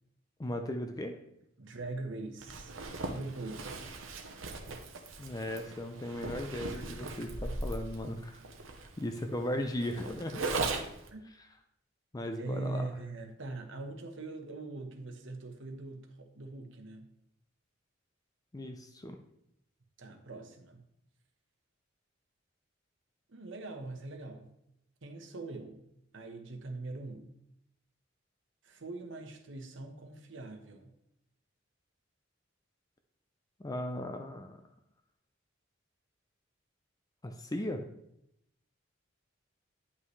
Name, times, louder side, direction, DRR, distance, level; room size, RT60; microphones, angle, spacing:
voice 1, 0.4-1.2 5.2-8.4 9.0-10.5 12.1-12.9 18.5-19.2 33.6-34.6 37.2-37.8, left 1 dB, 20° left, 5 dB, 0.5 m, -37 dB
voice 2, 1.6-2.7 3.1-3.7 6.7-7.3 11.1-11.2 12.3-17.1 20.0-20.8 23.3-24.5 25.0-25.8 26.1-27.3 28.6-30.9, right 2 dB, 70° right, 5 dB, 1.1 m, -42 dB
Zipper (clothing), 2.4-11.1, right 3 dB, 85° right, 0.9 m, -39 dB
9.7 x 5.6 x 3.2 m, 0.78 s
head